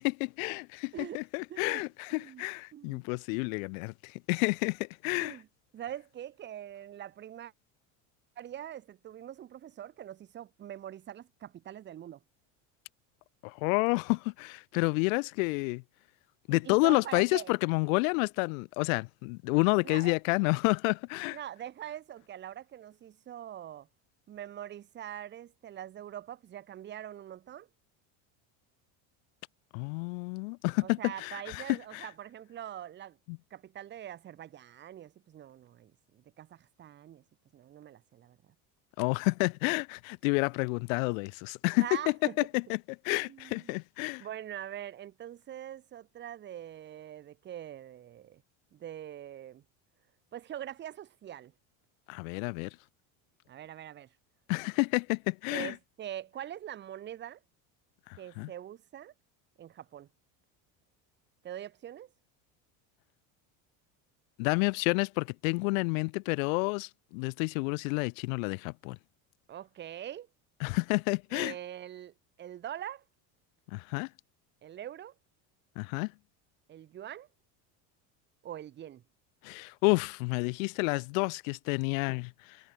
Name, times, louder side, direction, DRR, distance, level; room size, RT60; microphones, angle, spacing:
voice 1, 0.0-5.4 13.4-15.8 16.5-21.4 29.7-32.1 33.3-33.4 39.0-42.1 42.5-44.3 52.1-52.7 54.5-55.7 58.1-58.5 64.4-69.0 70.6-71.5 73.7-74.1 75.8-76.1 79.4-82.6, left 31 dB, 90° left, 0.5 m, -30 dB
voice 2, 1.5-1.8 2.1-2.5 2.7-3.0 5.2-5.5 5.7-7.5 8.4-12.2 16.5-17.5 19.8-20.1 21.3-23.9 24.3-27.7 30.8-33.2 33.5-37.2 37.5-38.4 41.8-42.4 43.1-43.8 44.2-48.4 48.7-49.6 50.3-51.5 53.5-54.1 55.5-57.4 58.2-59.1 59.6-60.1 61.4-62.1 69.5-70.3 71.3-73.0 74.6-75.1 76.7-77.3 78.4-79.0, right 11 dB, 25° right, 1.9 m, -43 dB
cardioid pair, 170°, 39 cm